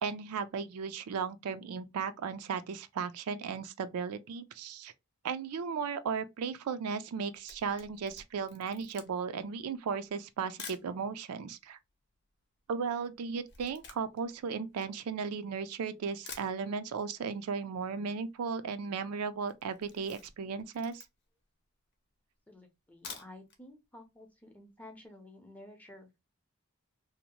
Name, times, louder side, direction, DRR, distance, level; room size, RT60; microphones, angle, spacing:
voice 1, 0.0-4.9 5.2-11.8 12.7-21.0, right 5 dB, 85° right, 0.4 m, -36 dB
Camera, 7.3-10.9 11.6-11.7 11.9-15.6 16.0-16.1 16.3-17.1 17.4-17.5 17.8-17.9 18.0-18.5 18.8-19.0 19.4-21.4 21.9-22.0 22.8-23.6 24.0-24.1 24.4-24.5, left 5 dB, 50° left, 0.7 m, -50 dB
voice 2, 22.5-26.1, left 1 dB, 5° left, 0.6 m, -52 dB
2.7 x 2.1 x 2.9 m
head